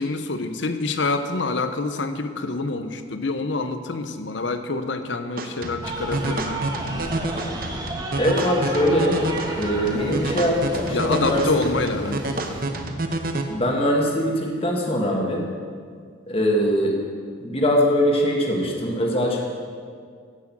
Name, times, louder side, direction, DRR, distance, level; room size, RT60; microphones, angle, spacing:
voice 1, 0.0-7.1 10.9-12.7, left 3 dB, 65° left, 9 dB, 0.8 m, -27 dB
sound 1, 5.4-13.4, right 2 dB, 45° right, 0.8 m, -29 dB
sound 2, 5.8-12.6, right 1 dB, 20° right, 1.3 m, -32 dB
voice 2, 8.2-9.2 9.5-11.4 13.5-15.5 16.3-17.0 17.4-19.4, equal, 30° left, 0 dB, 1.6 m, -22 dB
16.0 x 6.3 x 6.0 m, 2.1 s
head